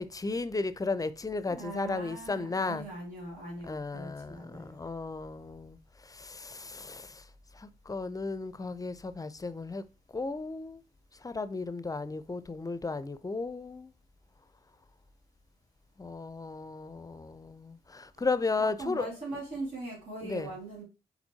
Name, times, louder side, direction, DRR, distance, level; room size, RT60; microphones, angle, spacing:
voice 1, 0.0-2.9 3.7-7.2 7.5-9.8 10.1-10.8 11.2-13.9 16.0-19.1 20.2-20.5, left 3 dB, 20° left, 0.4 m, -35 dB
voice 2, 1.5-4.8 18.6-20.8, right 2 dB, 75° right, 2.1 m, -41 dB
4.4 x 4.0 x 2.8 m
supercardioid pair, 50°, 16 cm